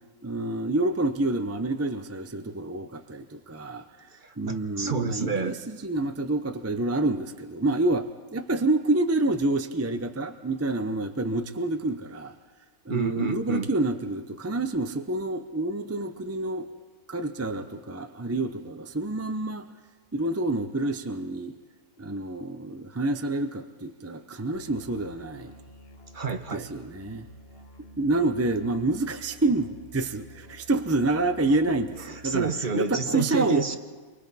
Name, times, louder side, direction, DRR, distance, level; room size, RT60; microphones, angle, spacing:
voice 1, 0.2-3.8 4.4-8.1 8.3-12.3 12.9-16.7 17.1-19.7 20.1-21.5 22.0-25.5 26.5-27.3 28.0-32.0 32.2-33.6, right 2 dB, 20° right, 8 dB, 0.4 m, -28 dB
voice 2, 4.2-5.6 12.9-13.7 26.1-26.7 32.0-33.8, right 5 dB, 35° right, 7 dB, 1.1 m, -29 dB
Musical instrument, 24.5-32.5, equal, 40° left, 1.7 m, -50 dB
30.0 x 24.0 x 4.2 m, 1.4 s
omnidirectional pair, 1.6 m